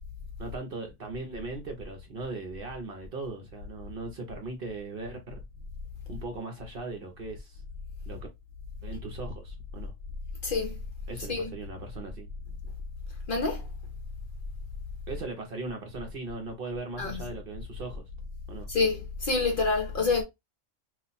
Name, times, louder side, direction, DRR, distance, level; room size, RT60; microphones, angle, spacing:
voice 1, 0.4-5.4 6.1-7.6 8.1-8.2 8.8-9.9 11.1-12.3 15.1-18.1 18.5-18.7, right 3 dB, 55° right, 0.7 m, -38 dB
voice 2, 10.4-10.8 11.3-11.5 13.3-13.7 17.0-17.2 18.7-20.2, left 4 dB, 50° left, 0.7 m, -27 dB
2.4 x 2.1 x 3.9 m
omnidirectional pair, 1.3 m